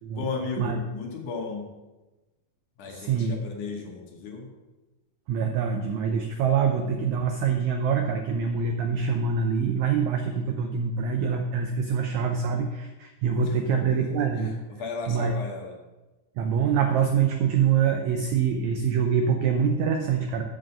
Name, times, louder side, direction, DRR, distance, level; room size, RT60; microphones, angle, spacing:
voice 1, 0.2-1.6 2.8-4.5 13.5-14.1 14.4-15.8, left 4 dB, 65° left, 1 dB, 2.5 m, -35 dB
voice 2, 2.9-3.3 5.3-14.5 15.1-15.3 16.4-20.4, right 6 dB, 85° right, 4 dB, 1.6 m, -25 dB
7.6 x 7.6 x 5.5 m, 1.1 s
omnidirectional pair, 4.1 m